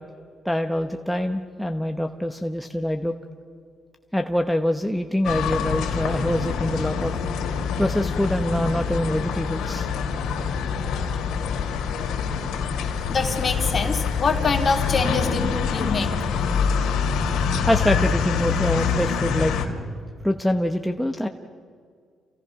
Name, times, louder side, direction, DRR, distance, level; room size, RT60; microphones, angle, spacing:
voice 1, 0.4-3.1 4.1-7.1 7.8-9.9 17.7-19.5 20.2-21.3, left 1 dB, ahead, 4 dB, 1.0 m, -24 dB
sound 1, 5.2-19.7, left 6 dB, 85° left, 2.4 m, -25 dB
voice 2, 13.1-16.6, left 4 dB, 35° left, 3 dB, 2.9 m, -25 dB
28.5 x 17.0 x 5.9 m, 2.1 s
cardioid pair, 90°, 0 cm